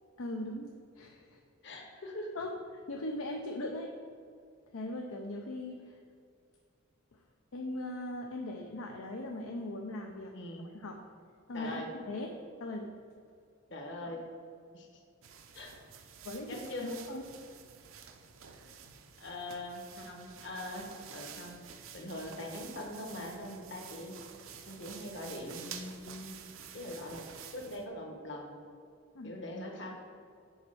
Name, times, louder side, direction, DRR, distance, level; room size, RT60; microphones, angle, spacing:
voice 1, 0.2-1.4 2.4-2.5 2.9-3.9 4.7-6.0 7.1-7.2 7.5-10.3 10.7-11.0 11.5-12.3 12.6-12.9 16.2-17.3 29.1-29.4, left 1 dB, 85° left, 2 dB, 0.6 m, -39 dB
voice 2, 1.6-2.3 10.3-10.7 11.5-11.9 13.7-14.2 14.7-14.9 15.5-15.8 16.5-16.9 19.2-21.6 21.9-24.2 24.7-26.4 26.7-27.2 27.5-28.6 29.2-29.9, left 1 dB, 55° left, 1 dB, 1.2 m, -42 dB
sound 1, 15.2-27.9, right 7 dB, 75° right, 0.6 m, -50 dB
7.0 x 4.3 x 6.1 m, 2.3 s
head